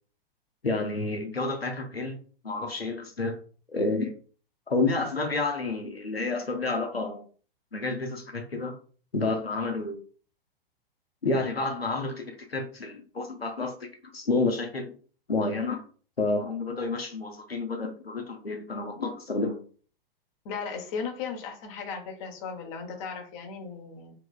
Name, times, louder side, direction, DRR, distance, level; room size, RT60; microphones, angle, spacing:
voice 1, 0.6-3.4 3.7-4.1 4.7-7.2 7.7-8.8 9.1-10.0 11.2-14.9 15.3-15.8 16.2-19.6, left 3 dB, 90° left, 4 dB, 0.7 m, -30 dB
voice 2, 20.4-24.1, left 5 dB, 35° left, 3 dB, 0.8 m, -36 dB
3.2 x 2.9 x 2.3 m, 0.41 s
figure-of-eight pair, 100°, 29 cm